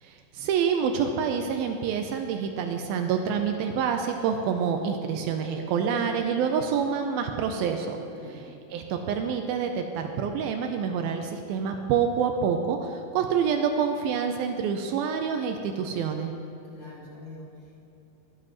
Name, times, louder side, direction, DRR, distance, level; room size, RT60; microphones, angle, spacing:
voice 1, 0.0-8.0 8.7-16.3, right 7 dB, 85° right, 5 dB, 2.2 m, -27 dB
sound 1, 4.8-6.9 7.2-8.6 8.9-9.9 10.5-10.6, right 2 dB, 65° right, 2.4 m, -46 dB
voice 2, 16.6-17.8, left 2 dB, 50° left, -5 dB, 1.3 m, -44 dB
21.0 x 9.8 x 3.0 m, 2.8 s
omnidirectional pair, 4.9 m